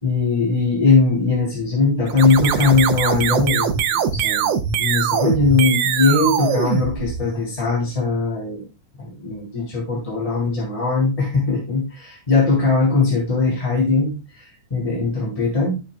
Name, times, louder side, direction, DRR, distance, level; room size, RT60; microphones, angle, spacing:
voice 1, 0.0-8.6 9.0-15.8, left 4 dB, 10° left, -4 dB, 3.2 m, -20 dB
sound 1, 2.1-7.5, right 8 dB, 75° right, 1.4 m, -22 dB
14.0 x 6.0 x 2.3 m, 0.29 s
omnidirectional pair, 3.6 m